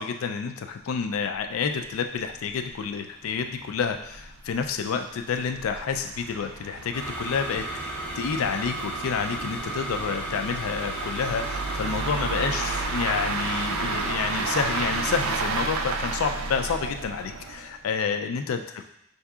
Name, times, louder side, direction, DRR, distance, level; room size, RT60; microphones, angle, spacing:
voice 1, 0.0-18.8, left 6 dB, 90° left, 6 dB, 0.4 m, -29 dB
sound 1, 1.4-1.5 1.7-1.8 2.3-2.4 2.7-2.8 3.4-17.8, right 4 dB, 80° right, 0.4 m, -32 dB
sound 2, 6.9-15.3, right 1 dB, 5° left, 0.5 m, -34 dB
5.7 x 2.7 x 2.3 m, 0.77 s
head